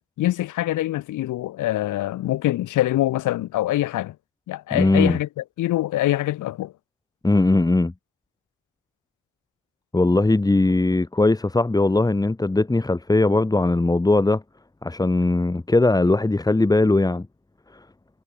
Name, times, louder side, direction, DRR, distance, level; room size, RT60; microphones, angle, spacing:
voice 1, 0.0-4.1 4.5-6.7, left 15 dB, 80° left, 1.9 m, -24 dB
voice 2, 4.7-5.2 7.2-7.9 9.9-14.4 14.8-17.3, left 2 dB, 10° left, 1.5 m, -19 dB
cardioid pair, 90°, 30 cm